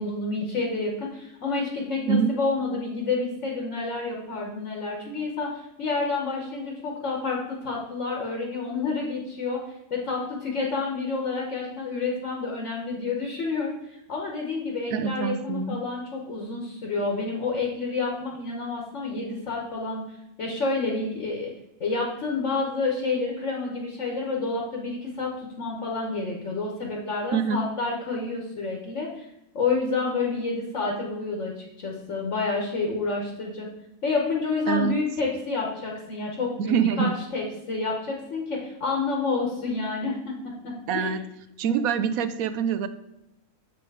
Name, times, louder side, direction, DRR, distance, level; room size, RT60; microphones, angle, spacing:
voice 1, 0.0-20.0 20.4-21.5 21.8-29.3 29.5-33.7 34.0-41.2, left 3 dB, 55° left, 0 dB, 1.4 m, -29 dB
voice 2, 14.9-15.8 27.3-27.6 34.7-34.9 36.6-37.1 40.9-41.2 41.6-42.9, right 7 dB, 75° right, 12 dB, 1.0 m, -25 dB
7.1 x 4.9 x 4.7 m, 0.85 s
omnidirectional pair, 1.6 m